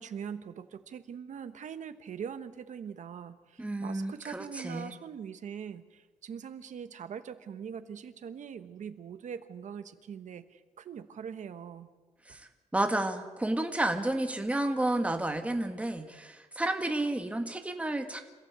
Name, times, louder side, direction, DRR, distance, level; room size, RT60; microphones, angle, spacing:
voice 1, 0.0-11.9, right 7 dB, 80° right, 10 dB, 1.3 m, -42 dB
voice 2, 3.6-4.9 12.3-18.2, right 1 dB, 10° right, 5 dB, 1.7 m, -31 dB
27.0 x 15.0 x 8.2 m, 1.4 s
wide cardioid pair, 150°, 12 cm